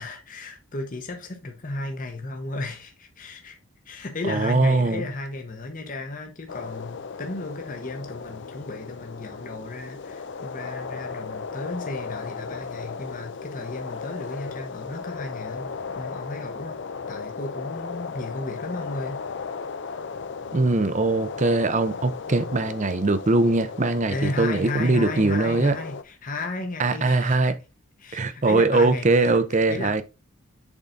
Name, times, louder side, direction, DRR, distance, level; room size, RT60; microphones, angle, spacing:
voice 1, 0.0-3.6 3.9-16.8 17.1-19.2 23.9-27.5 28.0-29.4 29.7-30.0, left 2 dB, 40° left, 1.0 m, -34 dB
voice 2, 4.2-5.0 20.5-25.8 26.8-27.6 28.1-30.0, right 3 dB, 35° right, 0.6 m, -21 dB
sound 1, 6.5-26.0, left 5 dB, 55° left, 0.5 m, -36 dB
7.2 x 4.0 x 3.9 m
head